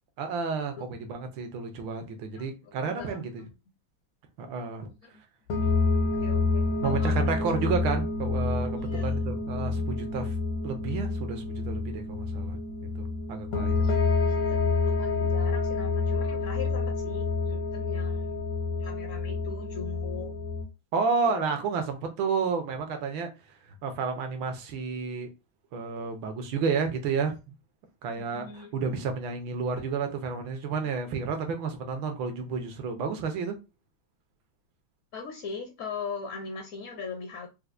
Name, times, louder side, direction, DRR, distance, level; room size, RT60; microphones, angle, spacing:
voice 1, 0.2-3.4 4.4-4.9 6.8-10.3 10.6-12.6 12.9-13.8 20.9-23.3 23.8-25.3 25.7-27.5 28.0-33.6, right 5 dB, 75° right, 1.4 m, -31 dB
voice 2, 2.3-3.5 5.0-5.1 5.7-7.5 8.7-9.2 13.6-18.3 18.8-20.3 21.2-21.6 28.2-28.7 35.1-37.5, left 5 dB, 65° left, 0.7 m, -41 dB
sound 1, 5.5-20.6, left 3 dB, 80° left, 1.7 m, -28 dB
4.5 x 2.0 x 2.5 m
omnidirectional pair, 2.3 m